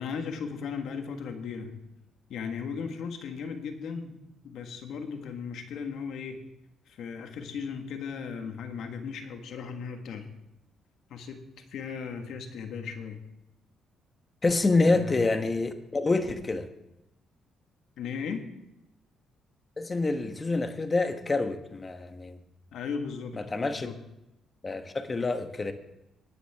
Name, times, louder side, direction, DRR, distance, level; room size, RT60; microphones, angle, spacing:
voice 1, 0.0-1.8 2.3-4.2 4.4-6.4 6.9-10.3 11.1-11.4 11.7-13.2 14.8-15.1 18.0-18.4 22.7-24.0, left 6 dB, 75° left, 6 dB, 1.5 m, -36 dB
voice 2, 14.4-16.7 19.8-22.4 23.3-23.9 24.6-25.7, left 3 dB, 30° left, 8 dB, 1.2 m, -27 dB
18.5 x 9.5 x 3.6 m, 0.87 s
cardioid pair, 90°, 0 cm